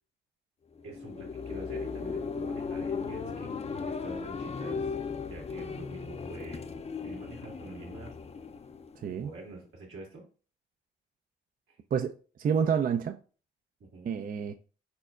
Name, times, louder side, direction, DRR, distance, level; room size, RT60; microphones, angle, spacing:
sound 1, 0.7-9.4, left 5 dB, 30° left, 0.5 m, -37 dB
voice 1, 0.8-3.5 3.8-4.9 5.3-6.6 7.0-8.1 9.1-10.2 11.7-11.8 13.9-14.1, right 3 dB, 80° right, 1.8 m, -46 dB
voice 2, 9.0-9.3 11.9-13.2 14.0-14.5, right 7 dB, 45° right, 0.4 m, -29 dB
4.4 x 4.2 x 2.4 m
supercardioid pair, 50°, 20 cm